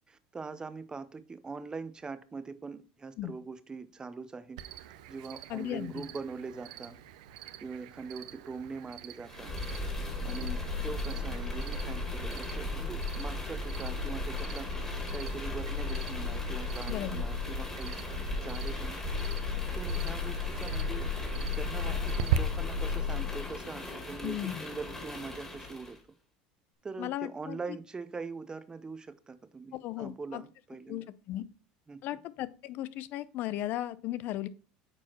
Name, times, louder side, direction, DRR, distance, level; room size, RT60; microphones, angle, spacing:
voice 1, 0.0-4.6 5.1-7.0 7.6-9.5 10.2-18.0 18.4-19.0 19.7-21.1 21.5-26.0 26.8-31.1 31.4-31.5 31.9-32.2, right 4 dB, 20° right, 0.7 m, -42 dB
Cricket, 4.6-22.4, right 11 dB, 80° right, 0.6 m, -42 dB
voice 2, 5.5-6.1 16.9-17.2 24.2-24.6 27.0-27.8 29.7-30.4 30.9-31.4 32.0-34.5, left 14 dB, 55° left, 0.5 m, -36 dB
sound 1, 9.3-26.0, left 3 dB, 15° left, 2.5 m, -35 dB
8.7 x 4.6 x 3.0 m
supercardioid pair, 95°, 4 cm